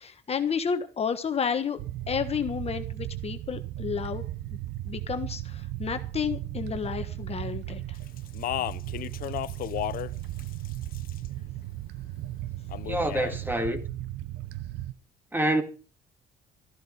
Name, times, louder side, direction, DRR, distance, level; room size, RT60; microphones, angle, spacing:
voice 1, 0.0-4.2 4.9-8.0, left 6 dB, 35° left, 1.4 m, -31 dB
sound 1, 1.8-14.9, right 15 dB, 85° right, 0.8 m, -36 dB
Speech, 8.2-10.1 10.4-11.3 12.7-13.4, left 13 dB, 60° left, 0.6 m, -33 dB
voice 2, 12.8-13.9 15.3-15.6, right 1 dB, 10° right, 2.3 m, -26 dB
13.5 x 12.0 x 5.5 m
cardioid pair, 110°, 17 cm